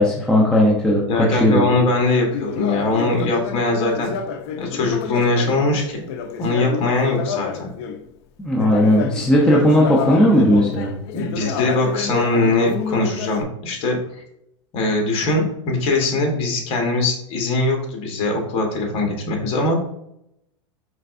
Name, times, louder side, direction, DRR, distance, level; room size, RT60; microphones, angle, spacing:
voice 1, 0.0-1.7 8.4-10.9, equal, 5° left, -4 dB, 0.6 m, -16 dB
voice 2, 1.1-4.1 4.6-6.1 6.4-7.7 11.1-14.0 14.7-19.8, left 2 dB, 35° left, 1 dB, 1.2 m, -21 dB
Conversation, 2.3-8.1 8.5-13.4, left 7 dB, 55° left, 0.5 m, -29 dB
4.4 x 3.3 x 2.5 m, 0.77 s
supercardioid pair, 130°, 16 cm